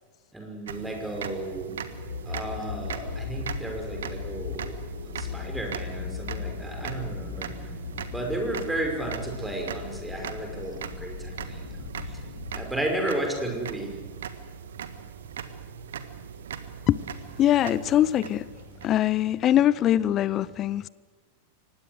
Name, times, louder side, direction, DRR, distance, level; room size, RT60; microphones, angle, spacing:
voice 1, 0.3-1.8 2.2-4.8 5.0-7.7 8.1-11.6 12.0-12.2 12.5-13.9, right 1 dB, 5° right, 2 dB, 5.6 m, -33 dB
sound 1, 0.7-19.4, right 7 dB, 65° right, 1.5 m, -40 dB
sound 2, 1.9-12.7, left 5 dB, 70° left, 4.6 m, -38 dB
voice 2, 17.4-18.5 18.8-20.9, left 12 dB, 30° left, 20 dB, 0.6 m, -22 dB
24.5 x 19.5 x 8.0 m, 1.4 s
figure-of-eight pair, 90°, 0 cm